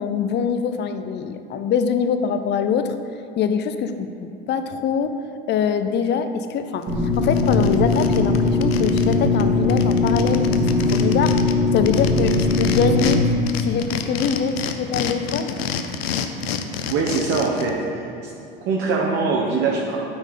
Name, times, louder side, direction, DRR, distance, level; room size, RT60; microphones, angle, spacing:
voice 1, 0.0-2.9 3.4-5.2 5.5-6.9 7.2-11.4 11.7-13.2 13.6-15.6, left 7 dB, 35° left, 9 dB, 0.6 m, -23 dB
sound 1, 6.8-6.9 7.2-9.1 9.4-9.5 9.7-13.2 13.5-17.7, left 8 dB, 80° left, 0.6 m, -29 dB
sound 2, 6.9-13.3, left 3 dB, 30° right, 1.9 m, -20 dB
voice 2, 16.9-18.3 18.6-20.0, right 4 dB, 45° right, -3 dB, 1.1 m, -22 dB
8.9 x 4.5 x 5.4 m, 2.7 s
hypercardioid pair, 80°, 30 cm